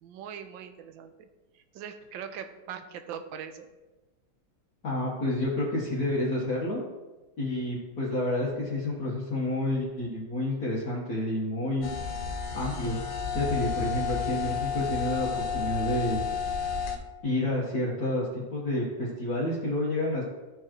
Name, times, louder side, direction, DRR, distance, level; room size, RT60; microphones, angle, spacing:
voice 1, 0.0-1.3 1.5-3.7, right 8 dB, 90° right, 9 dB, 1.4 m, -41 dB
voice 2, 4.8-6.8 7.4-13.0 13.3-16.2 17.2-20.2, left 1 dB, 55° left, -6 dB, 1.6 m, -29 dB
sound 1, 11.8-17.0, left 6 dB, 75° left, 1.4 m, -31 dB
13.0 x 4.7 x 2.9 m, 1.2 s
omnidirectional pair, 2.1 m